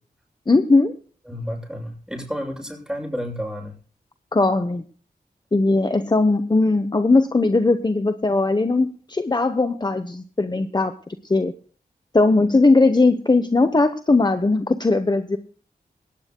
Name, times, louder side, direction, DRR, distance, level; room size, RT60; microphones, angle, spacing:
voice 1, 0.5-1.0 4.3-4.8 5.5-10.9 11.3-11.5 12.1-15.4, left 3 dB, 25° left, 10 dB, 0.9 m, -19 dB
voice 2, 1.3-3.7, equal, 5° right, -1 dB, 7.4 m, -31 dB
17.5 x 17.5 x 2.2 m, 0.42 s
cardioid pair, 45°, 16 cm